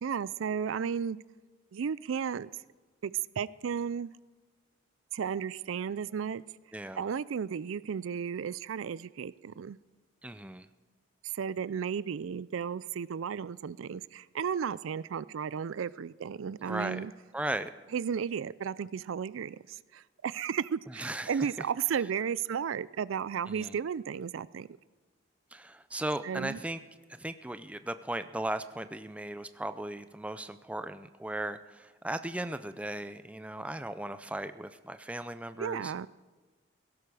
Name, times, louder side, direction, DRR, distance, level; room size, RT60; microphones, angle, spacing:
voice 1, 0.0-1.2 1.7-2.5 3.0-4.1 5.1-6.4 7.0-9.8 11.2-17.1 17.9-24.7 26.2-26.6 35.6-36.1, right 7 dB, 80° right, 19 dB, 0.4 m, -34 dB
voice 2, 6.7-7.0 10.2-10.7 16.6-17.0 17.3-17.7 21.0-21.4 23.5-23.7 25.5-26.8 27.2-35.9, right 1 dB, 5° right, 11 dB, 0.4 m, -37 dB
17.0 x 16.5 x 4.8 m, 1.3 s
head